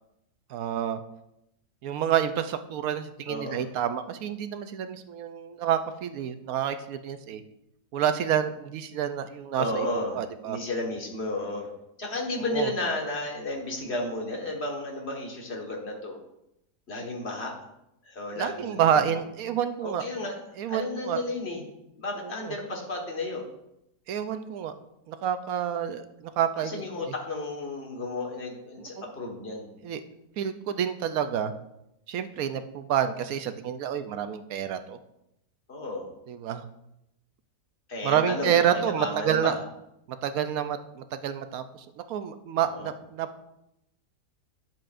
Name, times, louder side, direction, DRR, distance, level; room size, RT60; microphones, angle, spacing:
voice 1, 0.5-1.0 1.8-7.4 7.9-9.9 10.1-10.6 12.5-12.7 18.4-20.0 20.6-21.2 22.2-22.6 24.1-24.7 25.1-27.1 28.8-29.0 29.8-30.0 30.4-31.5 32.1-35.0 36.3-36.6 38.0-39.6 40.2-43.5, right 9 dB, 70° right, 9 dB, 0.9 m, -28 dB
voice 2, 3.3-3.7 9.6-10.2 10.5-11.7 12.0-16.2 16.9-17.5 18.0-19.1 19.8-20.4 20.7-21.6 22.0-23.4 26.6-29.7 35.7-36.1 37.9-39.6 42.7-42.9, left 2 dB, 40° left, 0 dB, 1.7 m, -33 dB
10.5 x 7.6 x 2.5 m, 0.84 s
omnidirectional pair, 1.8 m